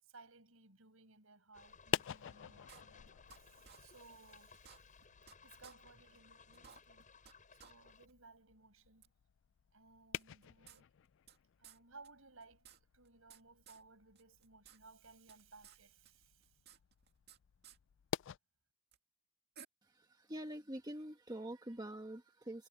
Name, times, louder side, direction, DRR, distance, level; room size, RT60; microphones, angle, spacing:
voice 1, 0.0-4.9 5.4-7.1 7.5-9.1 9.7-10.9 11.6-16.6, right 3 dB, 70° right, 7.8 m, -61 dB
sound 1, 1.5-8.1, left 5 dB, 40° left, 8.0 m, -62 dB
sound 2, 1.7-18.4, left 9 dB, 60° left, 0.3 m, -49 dB
sound 3, 2.7-3.4 3.6-3.8 4.1-4.2 4.5-5.3 5.6-5.7 6.1-6.2 6.5-7.3 7.6-7.7 8.1-8.2 9.0-9.1 10.2-11.4 11.6-11.8 12.0-12.1 12.4-13.4 13.7-13.8 14.1-14.8 15.0-15.8 16.0-17.4 17.6-17.8 18.9-19.0 19.6-19.7, right 8 dB, 50° right, 2.2 m, -58 dB
voice 2, 19.8-22.7, right 1 dB, 20° right, 1.5 m, -46 dB
head